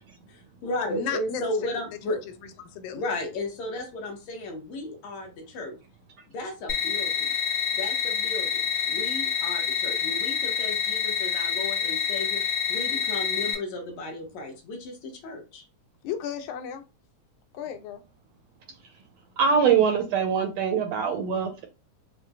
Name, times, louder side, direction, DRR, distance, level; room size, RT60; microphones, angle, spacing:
voice 1, 0.3-2.2 2.9-5.8 6.3-7.3 7.7-12.4 12.7-15.7, left 2 dB, 70° left, 2.1 m, -34 dB
voice 2, 0.9-1.7 2.1-2.2 2.6-3.0 16.0-16.8 17.5-18.0, left 7 dB, 85° left, 2.1 m, -34 dB
sound 1, 6.7-13.5, left 8 dB, 45° left, 1.1 m, -27 dB
voice 3, 19.4-21.7, right 6 dB, 80° right, 1.5 m, -23 dB
6.2 x 2.2 x 2.3 m
omnidirectional pair, 3.4 m